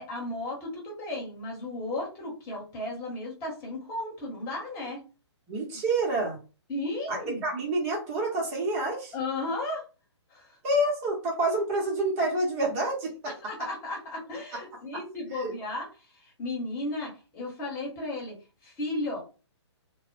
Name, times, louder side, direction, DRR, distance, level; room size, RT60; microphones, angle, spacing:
voice 1, 0.0-5.0 6.7-7.4 9.1-9.8 10.3-10.6 13.4-15.9 16.1-18.3 18.6-19.2, left 2 dB, 20° left, -2 dB, 1.0 m, -34 dB
voice 2, 5.5-6.4 7.1-9.1 10.6-13.3 15.3-15.5, right 2 dB, 30° right, -1 dB, 0.7 m, -28 dB
2.0 x 2.0 x 3.0 m, 0.34 s
hypercardioid pair, 150°, 15 cm